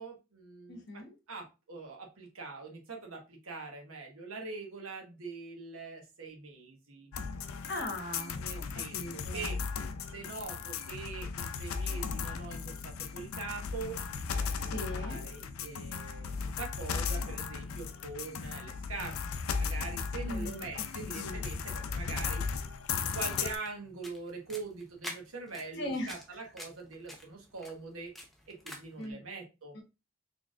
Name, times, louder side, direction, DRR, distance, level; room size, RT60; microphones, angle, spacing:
voice 1, 0.0-1.0 1.3-7.1 8.4-9.6 10.1-19.1 19.6-22.4 22.9-28.1 28.5-29.7, right 4 dB, 75° right, 1.2 m, -43 dB
voice 2, 0.7-1.1 7.7-9.6 14.7-15.2 20.2-20.8 21.2-21.4 25.8-26.1 29.0-29.2, left 1 dB, 50° left, 1.0 m, -39 dB
sound 1, 7.1-23.6, left 5 dB, 75° left, 0.4 m, -36 dB
sound 2, 23.3-29.1, equal, ahead, 0.6 m, -49 dB
4.0 x 3.4 x 2.4 m
head